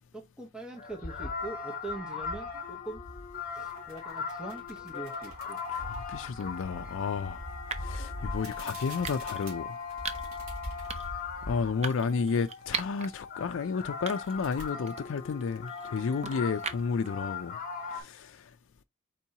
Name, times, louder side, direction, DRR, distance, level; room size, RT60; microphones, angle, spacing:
voice 1, 0.1-3.0 3.5-5.6, right 2 dB, 5° right, 0.9 m, -42 dB
sound 1, 0.8-18.0, left 4 dB, 40° left, 1.1 m, -39 dB
sound 2, 3.6-6.1 8.3-11.1 11.5-11.6 14.1-14.7, right 2 dB, 75° right, 2.4 m, -50 dB
voice 2, 5.7-7.4 7.8-9.7 11.5-17.6 17.9-18.4, left 5 dB, 60° left, 0.4 m, -32 dB
sound 3, 6.4-6.6 7.7-8.0 9.0-9.5 10.0-10.4 10.9-11.2 11.8-13.1 13.5-13.6 14.1-14.5 14.9-17.1, right 5 dB, 30° right, 0.5 m, -39 dB
4.5 x 4.3 x 2.7 m
head